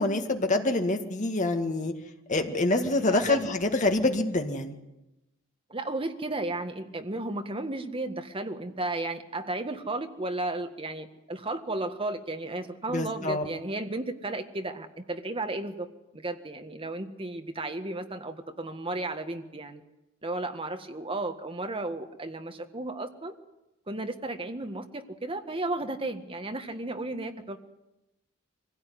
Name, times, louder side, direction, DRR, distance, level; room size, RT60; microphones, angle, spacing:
voice 1, 0.0-1.9 2.3-4.7 12.9-13.4, left 2 dB, 35° left, 5 dB, 2.0 m, -26 dB
voice 2, 5.7-15.9 16.1-19.8 20.2-23.3 23.9-27.6, right 2 dB, 25° right, 6 dB, 1.7 m, -34 dB
24.5 x 16.5 x 9.5 m, 0.95 s
head